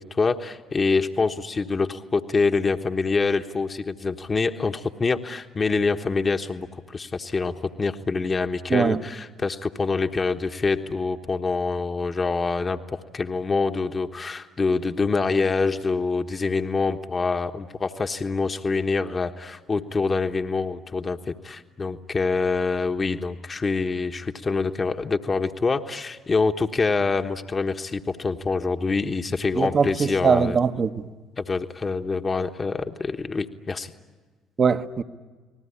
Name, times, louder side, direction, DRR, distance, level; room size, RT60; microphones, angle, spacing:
voice 1, 0.0-30.6 31.4-33.9, left 4 dB, 30° left, 1.2 m, -25 dB
voice 2, 8.7-9.0 29.5-31.1 34.6-35.0, right 6 dB, 40° right, 1.2 m, -21 dB
30.0 x 19.5 x 10.0 m
hypercardioid pair, 55°, 0 cm